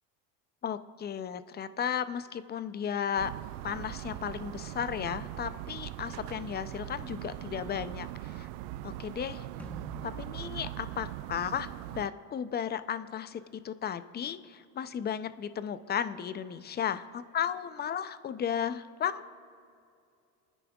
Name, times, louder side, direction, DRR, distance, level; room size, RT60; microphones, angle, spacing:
voice 1, 0.6-3.3 3.6-8.5 8.8-9.5 10.0-19.3, left 8 dB, 20° left, 13 dB, 0.5 m, -34 dB
sound 1, 3.2-12.1, right 15 dB, 70° right, 0.5 m, -41 dB
sound 2, 9.6-12.1, left 1 dB, 5° left, 0.8 m, -49 dB
28.5 x 10.0 x 2.4 m, 2.5 s
hypercardioid pair, 90°, 47 cm